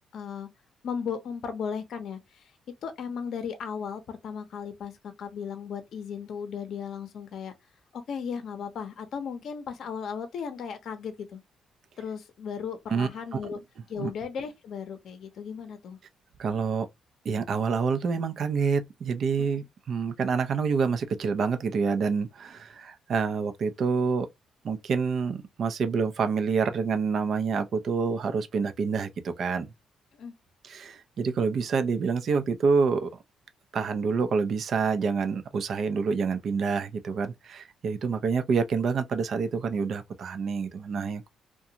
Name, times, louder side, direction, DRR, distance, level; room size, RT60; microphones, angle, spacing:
voice 1, 0.1-0.5 0.8-2.5 2.8-7.5 7.9-11.4 12.0-13.6 13.9-16.0 19.4-19.6 30.1-30.3, left 6 dB, 65° left, 0.6 m, -36 dB
voice 2, 12.9-13.5 14.0-14.1 16.4-16.9 17.2-24.3 24.6-29.7 30.6-33.1 33.7-41.3, right 5 dB, 60° right, 0.5 m, -27 dB
2.5 x 2.2 x 2.8 m
cardioid pair, 90°, 0 cm